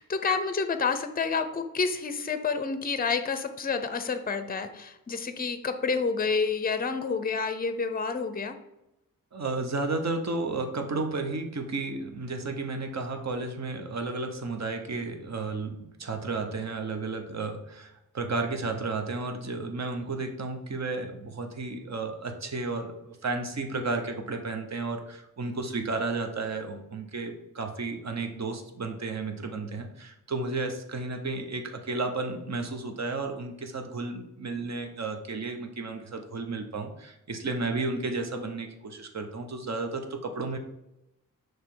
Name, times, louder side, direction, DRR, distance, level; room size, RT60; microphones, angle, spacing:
voice 1, 0.0-8.6, left 5 dB, 25° left, 9 dB, 0.5 m, -29 dB
voice 2, 9.3-40.6, right 3 dB, 50° right, 5 dB, 0.9 m, -33 dB
6.6 x 3.1 x 4.6 m, 0.88 s
wide cardioid pair, 95°, 33 cm